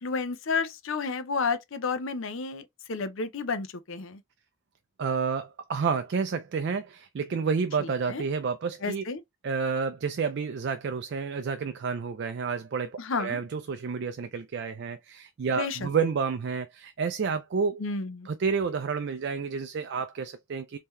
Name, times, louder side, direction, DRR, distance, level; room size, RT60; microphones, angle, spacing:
voice 1, 0.0-4.2 7.8-8.2 8.8-9.2 13.0-13.4 15.6-15.9 17.8-18.3, left 4 dB, 65° left, 0.6 m, -31 dB
voice 2, 5.0-9.0 9.4-17.8 18.3-20.8, right 5 dB, 55° right, 0.3 m, -30 dB
3.7 x 2.8 x 3.1 m
head